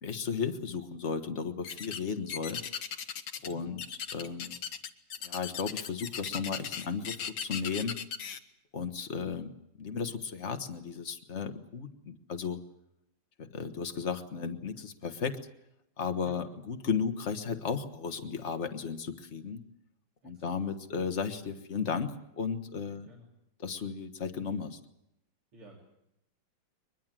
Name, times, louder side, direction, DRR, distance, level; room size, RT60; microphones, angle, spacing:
voice 1, 0.0-2.6 3.4-4.6 5.2-8.0 8.7-9.5 9.8-12.6 13.4-15.4 16.0-19.6 20.2-23.1 23.6-24.8, left 6 dB, 35° left, 8 dB, 1.5 m, -34 dB
sound 1, 1.6-2.0 2.3-3.5 3.8-8.4, left 8 dB, 65° left, 1.8 m, -37 dB
voice 2, 3.5-3.8 16.2-16.5 20.3-20.6 22.9-23.3 25.5-25.8, right 1 dB, 75° right, -3 dB, 4.4 m, -52 dB
23.0 x 21.5 x 7.6 m, 0.84 s
omnidirectional pair, 2.4 m